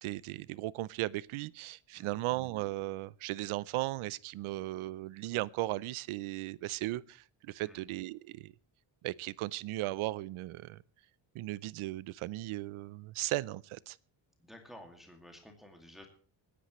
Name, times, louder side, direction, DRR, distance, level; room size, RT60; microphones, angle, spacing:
voice 1, 0.0-8.5 9.0-10.8 11.3-14.0, right 17 dB, 80° right, 0.7 m, -36 dB
voice 2, 1.9-2.3 7.6-7.9 14.4-16.1, left 1 dB, ahead, 2.2 m, -53 dB
26.0 x 10.0 x 3.1 m
cardioid pair, 155°, 49 cm